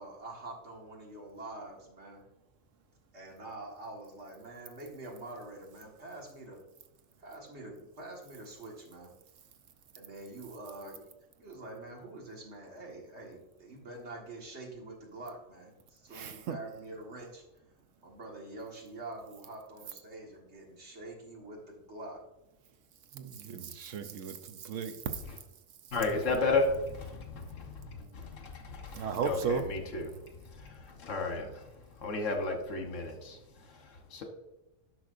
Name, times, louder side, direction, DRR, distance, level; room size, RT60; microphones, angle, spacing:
voice 1, 0.0-2.3 3.1-6.6 7.2-9.1 10.0-11.1 11.4-17.4 18.0-22.2, right 2 dB, 60° right, 2.0 m, -46 dB
voice 2, 16.1-16.6 23.1-25.2 28.9-29.6, right 6 dB, 80° right, 1.0 m, -35 dB
voice 3, 25.9-34.2, left 3 dB, 75° left, 1.4 m, -34 dB
10.0 x 6.1 x 2.5 m
omnidirectional pair, 1.3 m